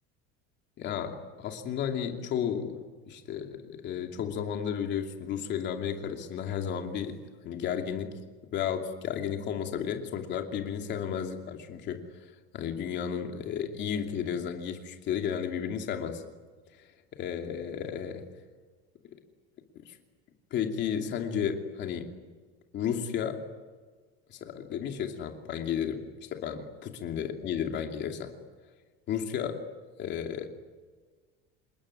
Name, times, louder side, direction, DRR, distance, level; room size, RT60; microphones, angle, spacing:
voice 1, 0.8-2.8 3.1-7.2 7.4-8.2 8.5-12.1 12.5-16.2 17.2-18.2 19.8-20.0 20.5-22.1 22.7-23.5 24.3-28.3 29.1-29.7 30.0-30.5, left 8 dB, 35° left, 4 dB, 2.7 m, -33 dB
28.0 x 20.0 x 9.9 m, 1.4 s
cardioid pair, 180°, 30 cm